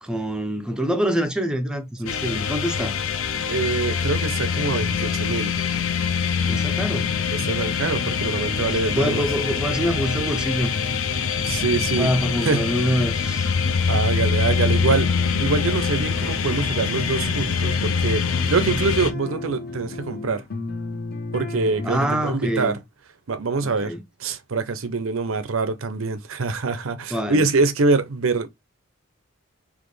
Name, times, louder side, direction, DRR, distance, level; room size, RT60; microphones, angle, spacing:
voice 1, 0.0-3.0 6.5-7.1 8.7-10.7 12.0-13.5 21.8-22.8 23.6-24.0 27.1-27.4, equal, 5° right, 0.6 m, -25 dB
sound 1, 2.1-19.1, left 6 dB, 70° left, 0.6 m, -24 dB
voice 2, 3.5-5.5 7.3-9.3 11.4-12.1 12.4-12.7 13.9-15.1 15.4-20.4 21.3-22.8 23.3-23.9 24.2-28.5, right 4 dB, 75° right, 0.6 m, -24 dB
sound 2, 14.0-22.3, left 2 dB, 50° left, 0.9 m, -34 dB
4.1 x 3.0 x 3.2 m
head